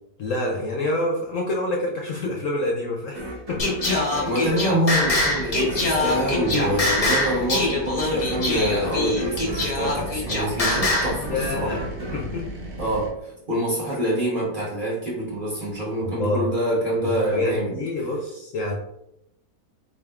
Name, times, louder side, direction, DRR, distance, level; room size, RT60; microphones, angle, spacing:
voice 1, 0.2-3.8 6.4-6.7 11.3-11.8 12.1-12.4 16.0-16.5 17.3-18.7, left 2 dB, 65° left, -1 dB, 0.8 m, -27 dB
sound 1, 3.1-13.4, right 1 dB, 55° right, 0.4 m, -35 dB
Singing, 3.6-11.2, left 2 dB, 45° left, 0.4 m, -24 dB
voice 2, 4.2-11.8 12.8-17.8, right 1 dB, 35° right, -5 dB, 1.0 m, -26 dB
sound 2, 5.0-13.1, right 1 dB, 85° right, 1.5 m, -36 dB
4.0 x 3.5 x 2.3 m, 0.82 s
omnidirectional pair, 1.8 m